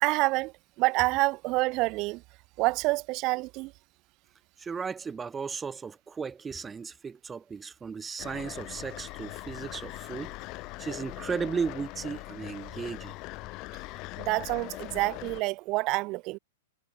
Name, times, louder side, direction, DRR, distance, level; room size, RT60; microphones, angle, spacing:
voice 1, 0.0-2.2 2.6-3.7 14.2-16.4, right 23 dB, 40° right, 1.9 m, -27 dB
voice 2, 4.6-10.3 10.8-13.2, right 5 dB, 15° right, 1.3 m, -35 dB
sound 1, 8.2-15.4, left 23 dB, 40° left, 1.6 m, -41 dB
hypercardioid pair, 130°, 0 cm